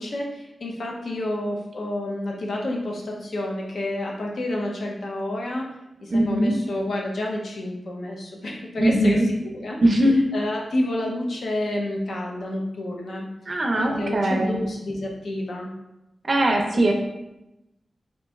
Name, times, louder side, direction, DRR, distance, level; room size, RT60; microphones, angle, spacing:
voice 1, 0.0-5.7 6.0-9.8 10.3-13.3 13.8-15.7 16.7-16.9, left 1 dB, 65° left, -1 dB, 0.6 m, -29 dB
voice 2, 6.1-6.6 8.8-9.3 9.8-10.2 13.5-14.6 16.2-16.9, right 1 dB, 40° right, 2 dB, 0.5 m, -20 dB
3.1 x 2.5 x 3.4 m, 0.92 s
wide cardioid pair, 160°, 0 cm